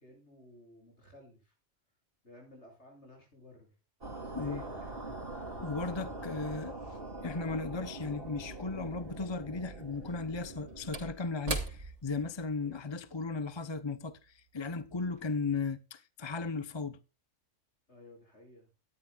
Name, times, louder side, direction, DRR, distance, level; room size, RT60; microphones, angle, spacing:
voice 1, 0.0-1.5 2.2-3.7 4.2-6.3 6.6-7.5 12.6-12.8 17.9-18.7, left 1 dB, 60° left, 8.5 m, -56 dB
sound 1, 4.0-11.0, right 2 dB, 45° right, 3.0 m, -43 dB
voice 2, 5.6-6.8 7.2-17.0, left 4 dB, 25° left, 0.8 m, -36 dB
Slam / Wood, 8.5-8.6 10.0-14.7 15.1-15.2, right 3 dB, 70° right, 3.0 m, -42 dB
18.0 x 13.0 x 2.4 m
omnidirectional pair, 1.3 m